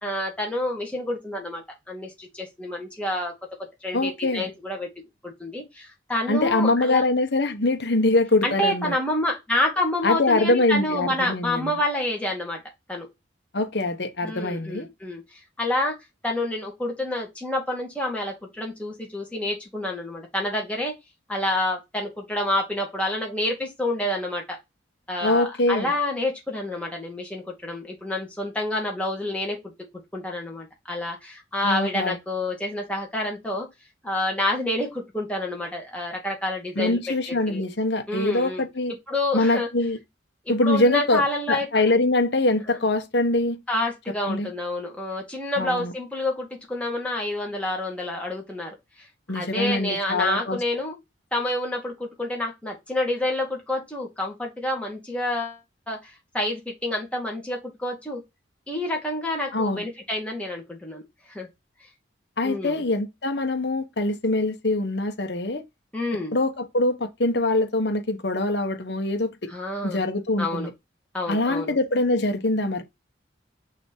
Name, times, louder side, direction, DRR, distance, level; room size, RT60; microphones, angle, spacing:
voice 1, 0.0-3.3 3.8-4.9 5.2-7.0 8.4-12.6 12.9-13.1 14.2-16.0 16.2-20.9 21.3-24.6 25.1-29.7 30.1-33.7 34.0-37.0 37.3-37.6 38.1-38.6 39.1-39.7 40.5-41.7 42.7-42.8 43.7-49.1 49.3-50.9 51.3-55.6 55.9-58.2 58.7-61.0 61.3-61.5 62.4-62.8 65.9-66.3 69.5-70.0 70.4-70.7 71.1-71.8, left 1 dB, 5° left, 2.2 m, -28 dB
voice 2, 3.9-4.5 6.3-8.9 10.0-11.7 13.5-14.9 25.2-25.9 31.6-32.2 36.8-38.9 39.3-40.0 40.5-43.6 44.3-44.5 45.6-45.9 49.3-50.6 59.5-59.8 62.4-65.6 66.3-69.5 69.8-70.7 71.3-72.8, left 2 dB, 60° left, 1.1 m, -23 dB
6.2 x 3.5 x 4.5 m
head